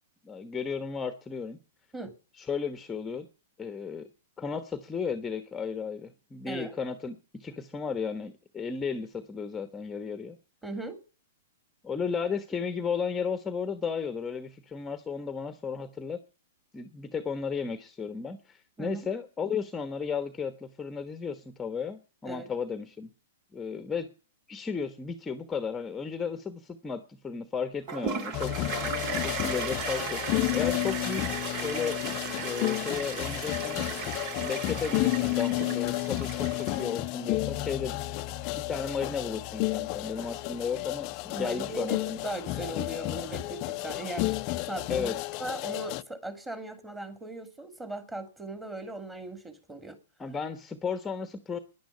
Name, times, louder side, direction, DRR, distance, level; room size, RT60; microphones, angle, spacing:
voice 1, 0.2-1.6 2.4-3.3 3.6-4.1 4.4-10.4 11.8-16.2 16.7-23.1 23.5-24.1 24.5-28.5 29.2-32.0 32.4-33.9 34.4-37.9 38.5-42.2 44.9-45.1 50.2-51.6, left 6 dB, 15° left, 10 dB, 1.2 m, -34 dB
voice 2, 10.6-11.0 18.8-19.1 22.2-22.5 41.3-50.0, right 2 dB, 10° right, 8 dB, 2.9 m, -38 dB
Toilet flush, 27.9-37.1, right 6 dB, 45° right, 2.1 m, -36 dB
sound 1, 28.3-46.0, left 19 dB, 40° left, 0.6 m, -31 dB
10.5 x 10.5 x 8.3 m, 0.37 s
hypercardioid pair, 115°, 0 cm